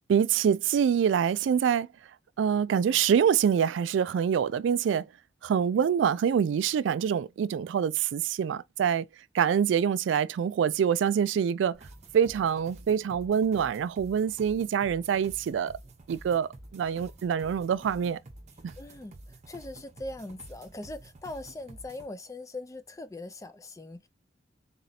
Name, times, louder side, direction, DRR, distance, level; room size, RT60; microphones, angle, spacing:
voice 1, 0.1-1.9 2.4-5.1 5.4-9.1 9.3-11.8 12.1-15.8 16.1-18.2 18.6-18.7, right 8 dB, 85° right, 0.3 m, -25 dB
sound 1, 11.7-22.1, right 1 dB, 40° right, 0.8 m, -50 dB
voice 2, 18.8-24.1, left 2 dB, 20° left, 0.5 m, -41 dB
4.2 x 2.8 x 4.0 m
head